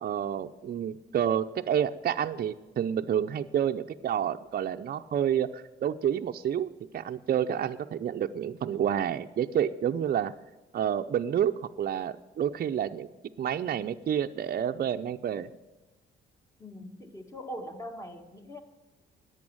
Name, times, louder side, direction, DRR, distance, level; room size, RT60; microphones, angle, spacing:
voice 1, 0.0-10.3 10.7-11.5 11.8-13.1 13.4-15.5, right 9 dB, 50° right, 7 dB, 0.6 m, -29 dB
voice 2, 16.6-18.6, equal, 15° left, 5 dB, 1.8 m, -41 dB
11.0 x 8.3 x 8.7 m, 1.1 s
cardioid pair, 90°, 20 cm